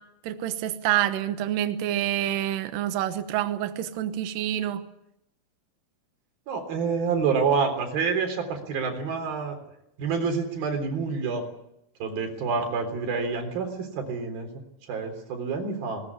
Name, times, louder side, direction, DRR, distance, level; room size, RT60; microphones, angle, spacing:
voice 1, 0.2-4.8, right 12 dB, 85° right, 9 dB, 1.9 m, -27 dB
voice 2, 6.5-9.6 10.0-11.4 12.0-14.5 14.9-16.0, right 5 dB, 50° right, 4 dB, 5.2 m, -27 dB
20.5 x 20.0 x 8.4 m, 0.82 s
omnidirectional pair, 5.7 m